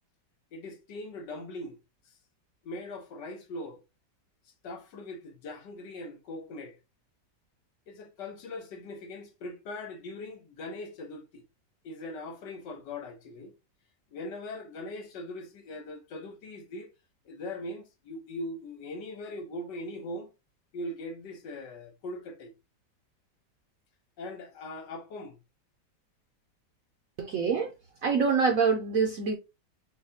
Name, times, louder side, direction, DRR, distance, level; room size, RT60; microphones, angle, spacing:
voice 1, 0.5-1.8 2.1-2.2 2.6-3.8 4.6-6.8 7.9-11.4 11.8-13.5 14.1-16.9 17.2-20.3 20.7-22.5 24.2-25.4, left 1 dB, 75° left, 1.7 m, -40 dB
voice 2, 27.2-27.7 28.0-29.4, right 5 dB, 65° right, 1.0 m, -25 dB
6.3 x 2.3 x 2.8 m
omnidirectional pair, 1.9 m